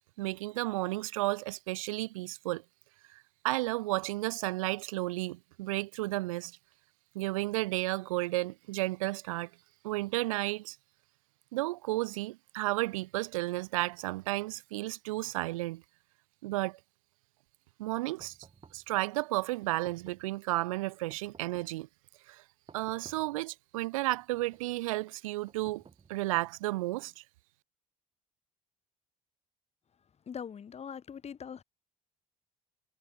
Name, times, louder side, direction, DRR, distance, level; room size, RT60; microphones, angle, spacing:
voice 1, 0.2-2.6 3.1-6.5 7.1-9.5 9.8-10.8 11.5-15.8 16.4-16.8 17.8-18.3 18.7-21.9 22.3-22.4 22.7-25.8 26.1-27.2, right 19 dB, 70° right, 0.7 m, -33 dB
sound 1, 18.2-18.9 19.6-20.3 21.1-21.9 22.7-23.4 24.1-24.7 25.5-26.4, right 5 dB, 30° right, 7.3 m, -57 dB
voice 2, 30.3-31.6, left 7 dB, 35° left, 3.5 m, -42 dB
figure-of-eight pair, 55°, 18 cm